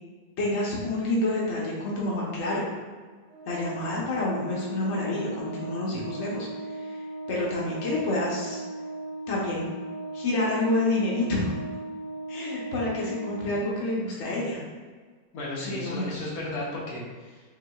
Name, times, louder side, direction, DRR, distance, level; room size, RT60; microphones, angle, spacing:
voice 1, 0.4-2.6 3.5-6.5 6.8-7.0 7.3-8.6 9.3-9.6 10.1-11.5 12.3-14.6 15.6-16.1, left 2 dB, 90° left, -5 dB, 0.6 m, -28 dB
Organ, 3.3-14.0, right 2 dB, 85° right, 0.7 m, -37 dB
voice 2, 15.3-17.4, left 1 dB, 60° left, -5 dB, 1.0 m, -34 dB
5.5 x 2.8 x 2.3 m, 1.5 s
omnidirectional pair, 2.3 m